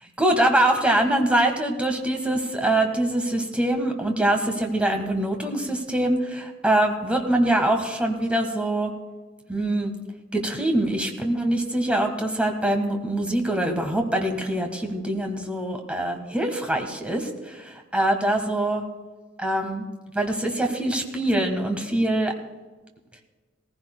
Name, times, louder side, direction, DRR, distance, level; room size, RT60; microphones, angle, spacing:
voice 1, 0.2-8.9 9.5-9.9 10.3-18.8 19.4-19.9 20.1-22.3, right 1 dB, 5° right, 3 dB, 1.4 m, -24 dB
18.0 x 15.0 x 2.2 m, 1.3 s
head